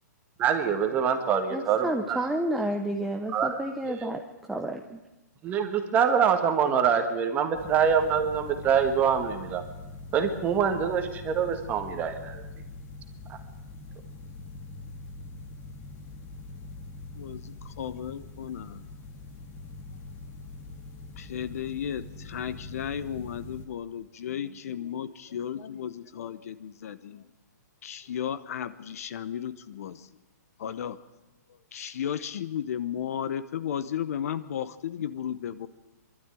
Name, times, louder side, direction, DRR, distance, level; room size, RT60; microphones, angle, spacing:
voice 1, 0.4-2.3 3.3-3.6 3.9-4.1 5.4-9.6 10.1-12.4, right 7 dB, 15° right, 6 dB, 1.7 m, -25 dB
voice 2, 1.5-4.2 4.5-5.0, right 1 dB, ahead, 3 dB, 0.7 m, -30 dB
sound 1, 7.5-23.7, left 2 dB, 20° left, 1.9 m, -43 dB
voice 3, 17.2-18.9 21.2-27.3 27.8-30.1 30.6-31.0 31.7-35.7, left 9 dB, 55° left, 14 dB, 1.0 m, -34 dB
23.5 x 12.5 x 9.1 m, 1.0 s
hypercardioid pair, 155°, 10 cm